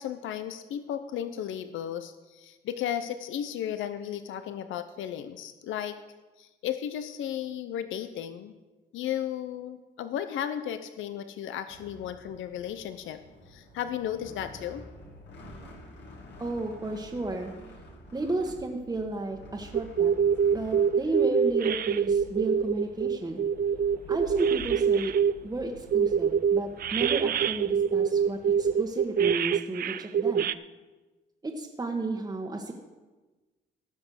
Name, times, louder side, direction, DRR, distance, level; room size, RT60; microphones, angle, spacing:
voice 1, 0.0-6.0 6.4-8.5 8.9-13.2 13.5-14.9, left 10 dB, 80° left, 10 dB, 0.7 m, -34 dB
sound 1, 11.7-28.8, equal, 60° left, 2.4 m, -49 dB
voice 2, 16.4-17.5 18.1-20.1 20.5-23.4 24.1-25.1 25.4-30.5 31.4-32.7, right 2 dB, 20° right, 0 dB, 1.3 m, -33 dB
sound 2, 19.7-25.4 25.9-30.5, right 7 dB, 50° right, 0.4 m, -25 dB
16.0 x 6.2 x 6.4 m, 1.2 s
cardioid pair, 90°, 20 cm